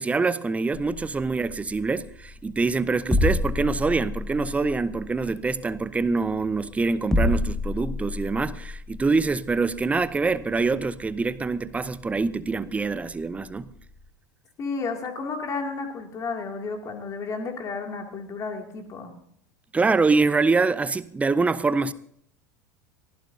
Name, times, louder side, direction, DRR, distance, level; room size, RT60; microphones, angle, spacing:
voice 1, 0.0-13.7 19.7-21.9, right 4 dB, 15° right, 0.7 m, -25 dB
sound 1, 0.7-14.1, left 2 dB, 5° left, 1.6 m, -31 dB
voice 2, 14.6-19.1, left 4 dB, 30° left, 2.4 m, -32 dB
24.0 x 15.5 x 2.7 m
figure-of-eight pair, 80°, 10 cm